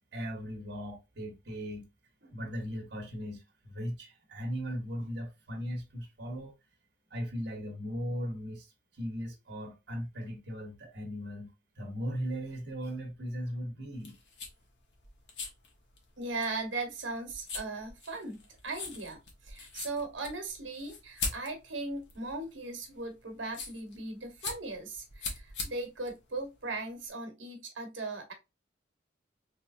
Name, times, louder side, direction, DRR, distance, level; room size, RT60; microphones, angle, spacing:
voice 1, 0.1-1.9 2.2-6.5 7.1-11.5 11.8-14.2, equal, 60° right, 1.1 m, -38 dB
sound 1, 13.9-27.1, left 4 dB, 65° left, 1.2 m, -42 dB
voice 2, 16.2-28.3, right 3 dB, 80° right, 1.1 m, -38 dB
3.3 x 3.2 x 2.4 m
head